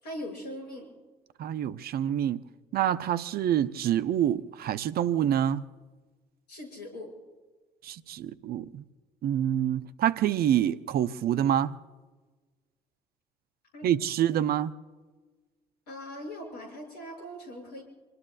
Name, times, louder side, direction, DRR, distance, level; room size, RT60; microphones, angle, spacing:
voice 1, 0.0-0.9 6.5-7.1 13.7-13.9 15.9-17.8, left 1 dB, 70° left, 7.1 m, -40 dB
voice 2, 1.4-2.4 2.7-5.7 7.8-8.8 9.2-11.8 13.8-14.7, right 10 dB, 50° right, 0.8 m, -27 dB
28.0 x 19.5 x 2.4 m
figure-of-eight pair, 50°, 21 cm